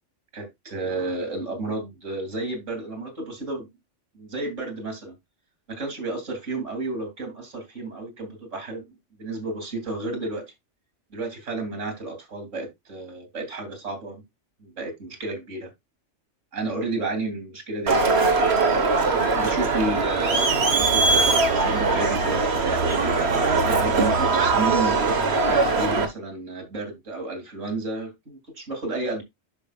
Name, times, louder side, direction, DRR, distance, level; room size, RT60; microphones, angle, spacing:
voice 1, 0.3-3.7 4.1-5.1 5.7-8.8 9.2-10.4 11.1-14.2 14.6-15.7 16.5-18.3 19.3-22.6 23.6-25.2 25.4-29.2, right 2 dB, 90° right, 3.2 m, -31 dB
Crowd, 17.9-26.1, right 3 dB, 60° right, 1.5 m, -21 dB
11.5 x 5.4 x 2.4 m
omnidirectional pair, 1.2 m